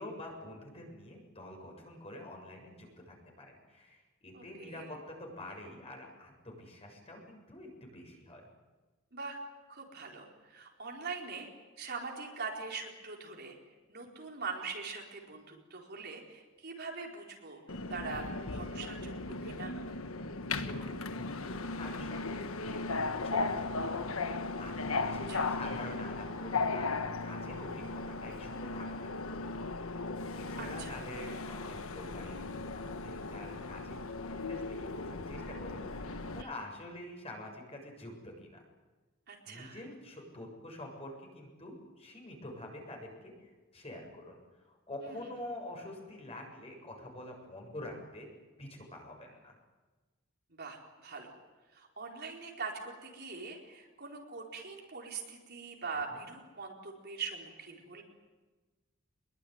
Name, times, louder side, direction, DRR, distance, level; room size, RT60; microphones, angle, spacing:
voice 1, 0.0-8.5 20.7-29.5 30.4-38.6 39.5-48.3 48.6-49.6 56.1-56.2, left 1 dB, 30° left, 1 dB, 7.1 m, -47 dB
voice 2, 4.3-4.9 9.1-9.4 9.7-11.5 11.8-13.6 13.9-17.6 17.9-19.7 25.3-25.5 30.6-31.0 36.4-36.5 39.3-39.8 45.0-45.2 50.5-51.3 51.7-58.0, right 4 dB, 50° right, 0 dB, 4.4 m, -42 dB
Subway metro underground, 17.7-36.4, left 3 dB, 85° left, 1.5 m, -37 dB
25.0 x 22.0 x 9.7 m, 1.3 s
head